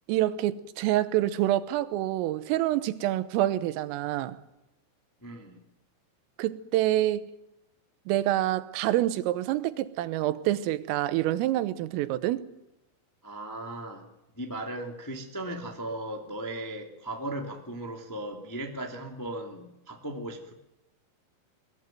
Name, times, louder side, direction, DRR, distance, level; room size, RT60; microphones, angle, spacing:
voice 1, 0.1-4.4 6.4-7.3 8.1-12.5, right 14 dB, 85° right, 3.6 m, -27 dB
voice 2, 5.2-5.6 13.2-14.1 14.3-20.5, right 1 dB, 25° left, 0.4 m, -37 dB
22.5 x 20.0 x 9.3 m
omnidirectional pair, 5.8 m